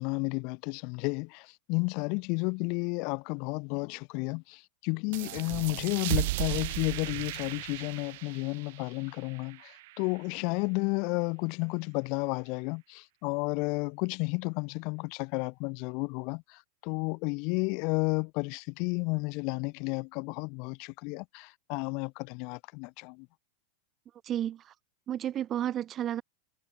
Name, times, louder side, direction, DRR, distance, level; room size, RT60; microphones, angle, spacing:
voice 1, 0.0-16.4 16.8-23.3, left 33 dB, 55° left, 0.7 m, -32 dB
sound 1, 5.1-10.4, right 19 dB, 65° right, 3.9 m, -36 dB
voice 2, 24.2-24.7 25.1-26.2, right 11 dB, 35° right, 0.9 m, -32 dB
hypercardioid pair, 115°, 0 cm